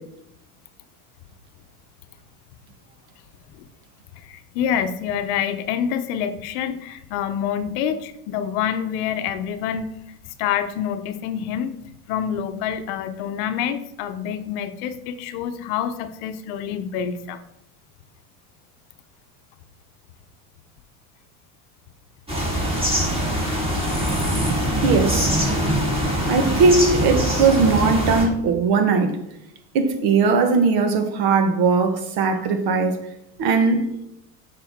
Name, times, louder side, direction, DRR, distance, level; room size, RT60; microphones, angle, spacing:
voice 1, 4.1-9.9 10.4-11.8 12.1-17.4 23.0-23.3, left 9 dB, 65° left, 0.8 m, -27 dB
sound 1, 22.3-28.2, equal, 15° right, 2.2 m, -23 dB
voice 2, 24.8-25.3 26.3-29.2 29.7-33.0 33.4-33.9, right 4 dB, 55° right, 1.2 m, -19 dB
7.8 x 5.8 x 3.6 m
supercardioid pair, 120°, 43 cm